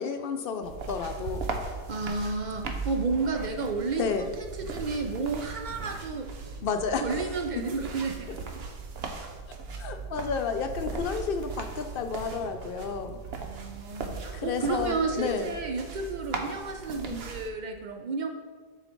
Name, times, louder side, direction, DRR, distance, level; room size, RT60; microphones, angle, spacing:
voice 1, 0.0-1.8 4.0-4.3 6.6-7.3 7.6-7.7 9.8-13.2 14.3-15.5, left 5 dB, 65° left, 7 dB, 0.7 m, -31 dB
sound 1, 0.6-17.5, right 4 dB, 80° right, 1.0 m, -38 dB
voice 2, 1.9-6.3 7.0-8.4 13.3-18.3, right 4 dB, 55° right, 4 dB, 0.6 m, -32 dB
6.9 x 4.9 x 4.4 m, 1.5 s
omnidirectional pair, 1.0 m